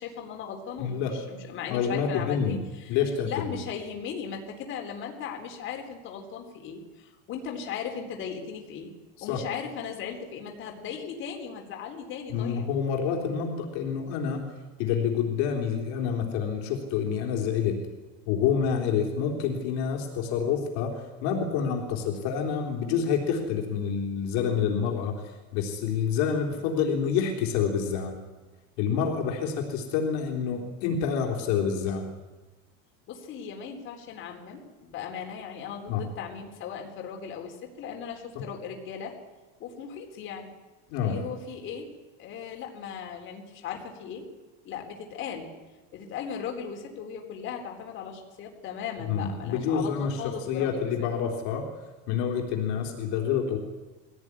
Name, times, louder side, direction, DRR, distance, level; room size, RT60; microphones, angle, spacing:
voice 1, 0.0-3.0 3.2-8.9 9.2-12.7 33.1-39.2 39.6-40.5 41.0-41.9 42.2-44.2 44.6-45.5 45.9-49.9 50.2-50.9, left 7 dB, 40° left, 2 dB, 4.1 m, -37 dB
voice 2, 0.8-1.2 1.7-2.6 2.9-3.5 9.2-9.5 12.3-14.5 14.8-17.8 18.3-28.2 28.8-32.1 35.9-36.0 38.4-38.5 40.9-41.2 49.1-51.7 52.1-53.6, left 7 dB, 65° left, 1 dB, 3.6 m, -28 dB
22.0 x 17.5 x 9.8 m, 1.2 s
cardioid pair, 170°, 31 cm